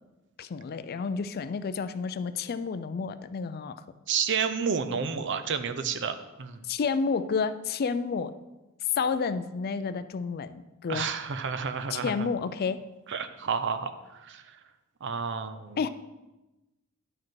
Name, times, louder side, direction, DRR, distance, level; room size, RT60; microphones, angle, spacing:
voice 1, 0.4-3.8 6.7-8.3 8.9-11.1 11.9-12.8 15.8-15.9, left 5 dB, 45° left, 13 dB, 0.4 m, -30 dB
voice 2, 4.1-6.7 10.9-12.3 13.1-14.6 15.0-15.8, right 6 dB, 55° right, 9 dB, 0.6 m, -31 dB
11.0 x 4.9 x 4.6 m, 1.1 s
head